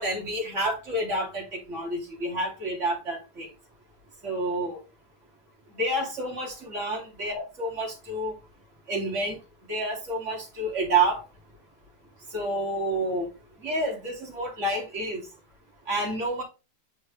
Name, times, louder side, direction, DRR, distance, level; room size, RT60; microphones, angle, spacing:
voice 1, 0.0-3.5 4.2-4.8 5.8-8.3 8.9-9.4 9.7-11.2 12.3-13.3 13.6-15.2 15.9-16.4, right 2 dB, 45° right, -1 dB, 2.6 m, -29 dB
8.8 x 4.5 x 3.2 m, 0.29 s
omnidirectional pair, 1.8 m